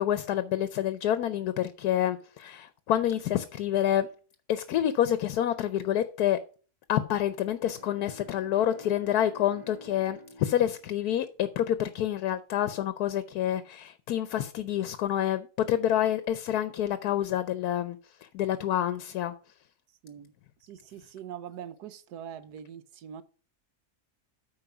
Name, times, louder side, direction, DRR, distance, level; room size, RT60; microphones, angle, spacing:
voice 1, 0.0-4.1 4.5-6.4 6.9-19.3, left 11 dB, 75° left, 1.2 m, -28 dB
Bowed string instrument, 7.5-12.1, right 1 dB, 50° right, 2.6 m, -51 dB
voice 2, 20.6-23.2, right 9 dB, 80° right, 1.3 m, -43 dB
8.9 x 5.3 x 5.8 m
omnidirectional pair, 1.7 m